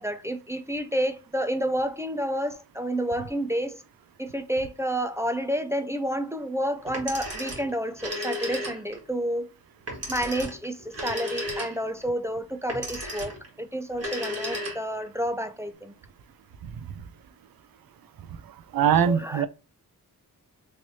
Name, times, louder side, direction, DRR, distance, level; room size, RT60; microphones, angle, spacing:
voice 1, 0.0-3.8 4.2-9.5 10.1-15.9 19.1-19.5, equal, 10° right, 0.3 m, -30 dB
Telephone, 6.9-9.1 9.9-12.0 12.7-13.5 13.9-15.1, equal, 45° right, 1.5 m, -34 dB
voice 2, 18.7-19.5, right 8 dB, 75° right, 0.5 m, -21 dB
3.2 x 3.0 x 2.7 m
wide cardioid pair, 115°, 35 cm